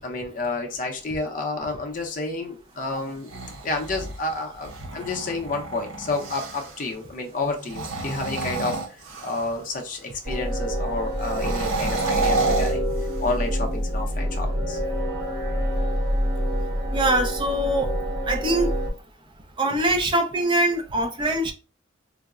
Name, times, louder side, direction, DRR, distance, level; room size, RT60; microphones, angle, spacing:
voice 1, 0.0-12.9 13.2-14.8, left 3 dB, 40° left, 0.6 m, -30 dB
sound 1, 3.1-6.8 7.6-9.6 11.2-13.5, right 3 dB, 90° right, 0.6 m, -30 dB
sound 2, 10.2-18.9, equal, 55° right, 1.6 m, -26 dB
voice 2, 16.9-17.9 18.2-18.7 19.6-21.5, right 1 dB, 25° right, 0.5 m, -23 dB
3.9 x 2.0 x 2.3 m
head